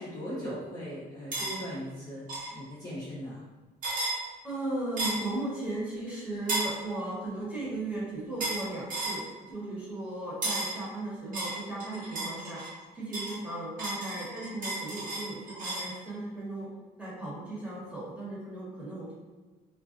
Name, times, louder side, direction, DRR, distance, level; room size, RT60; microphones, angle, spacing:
voice 1, 0.0-2.3 2.5-3.4, equal, 20° left, -8 dB, 0.7 m, -38 dB
sound 1, 1.3-1.5 2.3-2.5 3.8-4.2 5.0-5.3 6.5-6.7 8.4-8.6 8.9-9.2 10.4-10.8 11.3-12.7 13.1-15.9, right 2 dB, 50° right, 1.0 m, -33 dB
voice 2, 4.4-12.6 12.9-16.7 17.0-19.1, right 2 dB, 10° right, -8 dB, 1.1 m, -36 dB
2.4 x 2.2 x 2.5 m, 1.3 s
cardioid pair, 110°, 17 cm